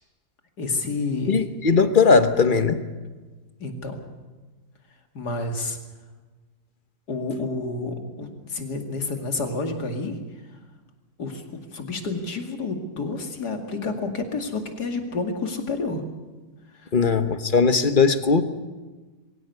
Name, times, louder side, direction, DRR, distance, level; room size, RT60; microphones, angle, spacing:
voice 1, 0.6-1.4 3.6-4.0 5.1-5.8 7.1-10.2 11.2-16.0 16.8-16.9, left 3 dB, 85° left, 4 dB, 2.9 m, -29 dB
voice 2, 1.3-2.8 16.9-18.4, left 5 dB, 35° left, 10 dB, 1.1 m, -19 dB
22.5 x 16.5 x 8.1 m, 1.3 s
omnidirectional pair, 1.7 m